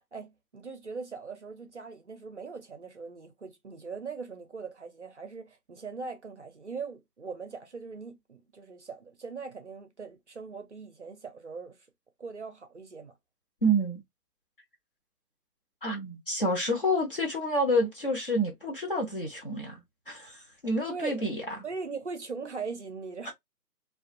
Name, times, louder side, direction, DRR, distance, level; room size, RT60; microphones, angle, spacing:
voice 1, 0.1-11.8 12.2-13.2 20.9-21.2 21.6-23.3, right 5 dB, 50° right, 0.5 m, -40 dB
voice 2, 13.6-14.0 15.8-21.4, equal, 35° left, 0.7 m, -28 dB
2.3 x 2.2 x 2.5 m
figure-of-eight pair, 165°, 47 cm